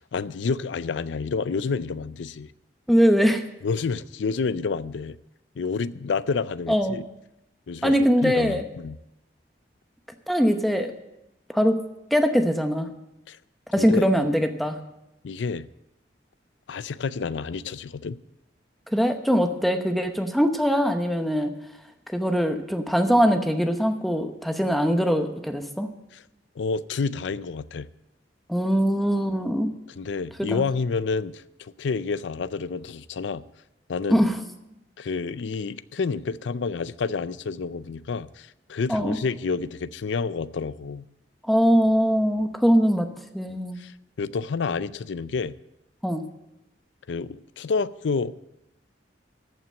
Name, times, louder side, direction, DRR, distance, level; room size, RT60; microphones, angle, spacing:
voice 1, 0.0-2.5 3.6-5.2 5.6-7.0 7.7-9.0 13.3-13.4 13.8-14.1 15.2-15.7 16.7-18.2 26.1-26.2 26.6-27.9 30.0-33.4 33.9-34.3 35.0-41.0 43.8-43.9 44.2-45.5 47.1-48.3, left 4 dB, 85° left, 0.5 m, -29 dB
voice 2, 2.9-3.4 6.7-7.0 7.8-8.6 10.3-10.9 11.5-11.8 12.1-12.9 13.7-14.8 18.9-21.5 22.1-25.9 28.5-29.7 30.5-30.6 34.1-34.4 38.9-39.2 41.5-43.1 43.3-43.8 46.0-46.2, equal, ahead, 0.9 m, -22 dB
14.5 x 5.9 x 7.7 m
head